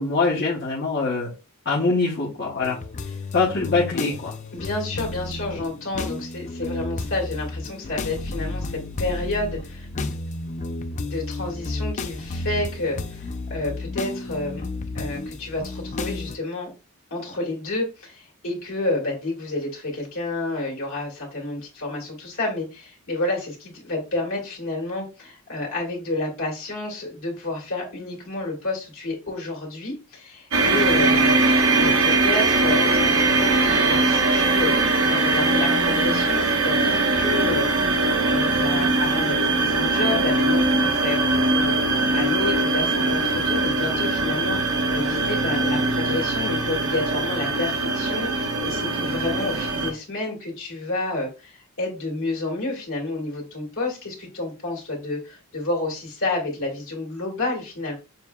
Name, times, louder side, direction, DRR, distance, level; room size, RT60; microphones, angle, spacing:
voice 1, 0.0-1.3 1.6-2.8 3.3-4.3 49.8-49.9, left 3 dB, 50° left, -5 dB, 0.9 m, -23 dB
sound 1, 2.6-16.4, left 2 dB, 35° left, 0.3 m, -32 dB
voice 2, 4.5-9.9 11.1-14.7 14.9-16.7 17.1-57.9, left 2 dB, 65° left, -2 dB, 2.0 m, -30 dB
sound 2, 30.5-49.9, right 2 dB, 65° right, 1.0 m, -21 dB
6.7 x 2.7 x 2.3 m, 0.31 s
head